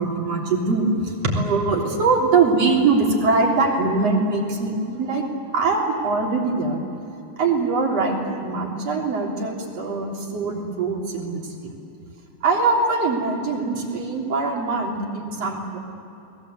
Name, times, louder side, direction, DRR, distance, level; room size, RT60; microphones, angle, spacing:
voice 1, 0.0-5.2 5.5-6.8 7.4-11.7 12.4-15.8, right 3 dB, 45° right, 0 dB, 4.4 m, -22 dB
29.5 x 21.5 x 8.2 m, 2.9 s
omnidirectional pair, 4.1 m